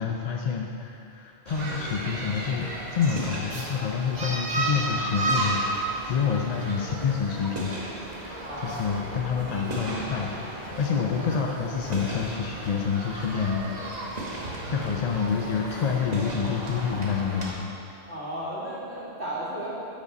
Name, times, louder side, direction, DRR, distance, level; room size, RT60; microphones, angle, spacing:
voice 1, 0.0-7.7 8.6-14.2 14.7-17.7, left 6 dB, 50° left, 0 dB, 0.5 m, -28 dB
sound 1, 1.5-17.5, right 2 dB, 40° right, 1.1 m, -33 dB
voice 2, 8.4-9.0 11.1-11.3 18.1-19.7, right 1 dB, 85° right, -7 dB, 2.2 m, -35 dB
10.0 x 5.2 x 4.0 m, 2.7 s
omnidirectional pair, 1.1 m